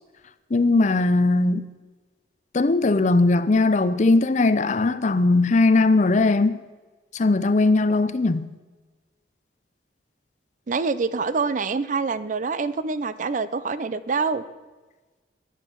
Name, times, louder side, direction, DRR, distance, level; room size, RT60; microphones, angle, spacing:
voice 1, 0.5-1.6 2.5-6.6 7.1-8.5, left 3 dB, 40° left, 0.5 m, -19 dB
voice 2, 10.7-14.4, right 4 dB, 40° right, 0.4 m, -26 dB
11.0 x 8.1 x 7.3 m
head